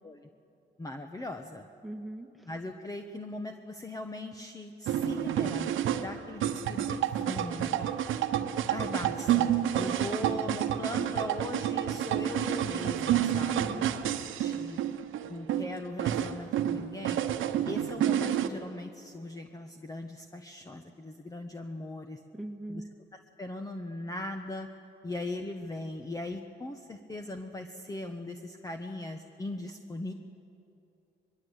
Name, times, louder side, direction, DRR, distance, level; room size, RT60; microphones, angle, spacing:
voice 1, 0.8-1.6 2.4-7.9 8.7-13.8 14.4-14.8 15.3-17.2 17.7-22.2 22.7-22.8 23.4-24.7 25.0-30.1, left 2 dB, 15° left, 5 dB, 1.2 m, -39 dB
voice 2, 1.8-2.5 13.5-14.0 22.3-22.9, right 1 dB, ahead, 5 dB, 2.0 m, -40 dB
sound 1, 4.9-18.5, right 10 dB, 80° right, 1.2 m, -29 dB
22.5 x 22.5 x 8.2 m, 2.7 s
cardioid pair, 90°, 20 cm